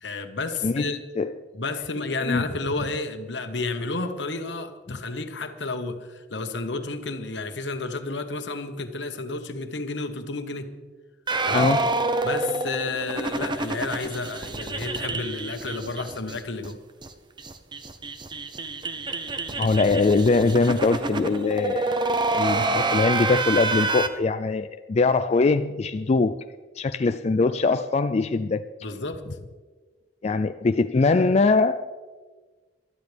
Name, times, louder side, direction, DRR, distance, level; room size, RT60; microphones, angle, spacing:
voice 1, 0.0-1.0 1.5-10.7 11.4-11.7 12.2-16.8 28.8-29.2 30.3-30.4, left 3 dB, 75° left, 1.2 m, -31 dB
voice 2, 0.6-1.3 2.2-2.5 11.5-11.9 19.6-22.0 22.3-26.3 26.8-28.7 30.2-31.9, left 3 dB, 35° left, 0.4 m, -22 dB
sound 1, 11.3-16.4 16.6-16.7 17.0-17.1 17.4-24.1, right 3 dB, 25° right, 0.8 m, -27 dB
20.0 x 12.5 x 3.4 m
head